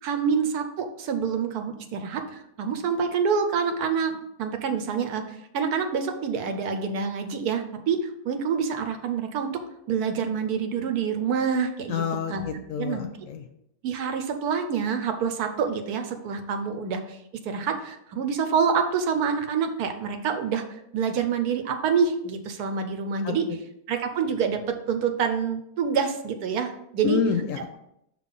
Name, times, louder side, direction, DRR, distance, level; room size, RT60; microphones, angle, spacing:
voice 1, 0.0-9.6 9.9-12.0 12.3-13.1 13.8-17.2 17.4-20.6 20.9-23.4 23.9-24.6 24.9-27.2, right 6 dB, 75° right, 6 dB, 1.2 m, -27 dB
voice 2, 11.9-13.5 23.2-23.3 27.0-27.8, left 6 dB, 65° left, 7 dB, 0.9 m, -28 dB
5.9 x 3.1 x 5.4 m, 0.78 s
omnidirectional pair, 1.7 m